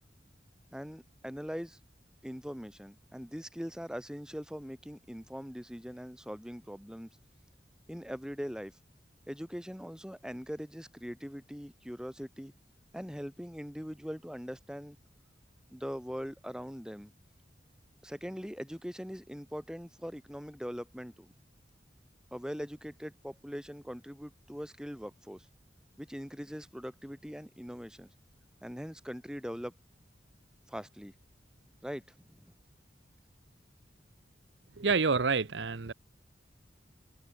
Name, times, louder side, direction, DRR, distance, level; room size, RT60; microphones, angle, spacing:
voice 1, 0.7-1.8 2.2-7.1 7.9-8.7 9.3-12.5 12.9-15.0 15.7-17.1 18.0-21.3 22.3-25.5 26.0-28.1 28.6-29.7 30.7-31.1 31.8-32.5, equal, 5° right, 3.9 m, -41 dB
voice 2, 34.8-35.9, right 4 dB, 75° right, 0.9 m, -28 dB
head